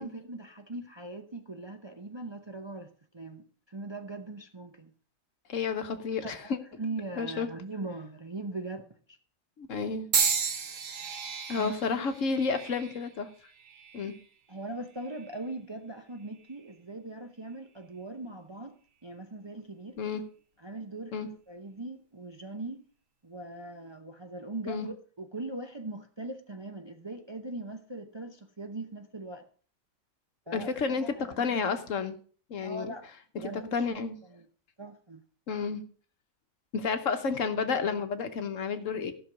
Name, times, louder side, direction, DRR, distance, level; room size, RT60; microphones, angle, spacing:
voice 1, 0.0-4.9 6.2-9.2 11.5-12.0 14.5-18.7 19.0-20.0 20.6-21.2 21.5-22.8 23.2-29.5 30.5-31.6 32.6-33.1 33.4-34.0 34.3-34.5 34.8-35.2, right 2 dB, 25° right, 0.6 m, -40 dB
voice 2, 5.5-6.6 7.2-7.5 9.6-10.1 11.0-11.1 11.5-13.3 13.9-14.1 20.0-20.2 21.1-21.3 24.7-24.9 30.5-32.1 32.5-32.9 33.3-34.2 35.5-35.8 36.7-39.1, left 5 dB, 70° left, 1.3 m, -31 dB
sound 1, 10.1-14.3 15.0-15.4 16.4-16.6, right 6 dB, 70° right, 1.4 m, -33 dB
14.5 x 6.2 x 5.0 m
omnidirectional pair, 1.4 m